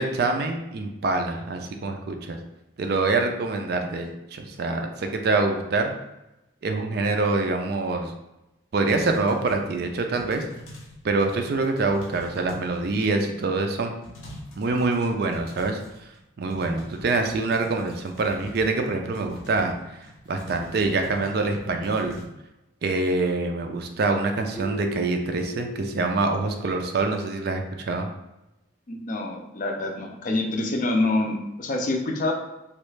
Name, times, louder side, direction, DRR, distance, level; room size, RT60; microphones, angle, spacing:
voice 1, 0.0-2.4 2.8-5.9 6.6-8.1 8.7-10.4 11.0-13.9 14.6-15.8 16.4-20.0 20.3-22.2 22.8-28.1, right 3 dB, 50° right, 5 dB, 0.4 m, -25 dB
sound 1, 8.9-11.0 11.3-13.3 13.7-13.8 14.0-16.2 16.5-22.3, left 1 dB, 90° left, 0.8 m, -45 dB
Keyboard (musical), 24.5-27.3, left 1 dB, 5° left, 0.7 m, -38 dB
voice 2, 28.9-32.3, left 2 dB, 40° left, 2 dB, 0.4 m, -26 dB
3.1 x 2.3 x 3.2 m, 0.93 s
head